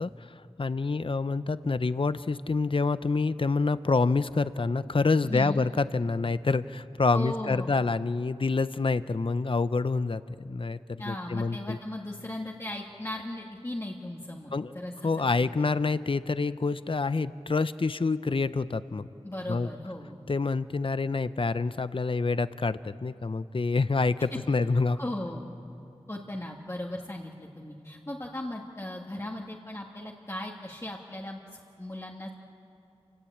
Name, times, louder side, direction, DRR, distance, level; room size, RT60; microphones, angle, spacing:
voice 1, 0.0-11.8 14.5-14.7 15.0-19.1 19.5-19.7 20.3-25.0, left 3 dB, 50° left, 14 dB, 0.7 m, -27 dB
voice 2, 5.2-5.7 7.1-7.7 11.0-15.8 19.2-20.2 24.3-24.4 24.9-25.5 26.1-32.3, left 1 dB, 25° left, -2 dB, 1.9 m, -37 dB
28.0 x 19.0 x 8.5 m, 3.0 s
wide cardioid pair, 60°, 11 cm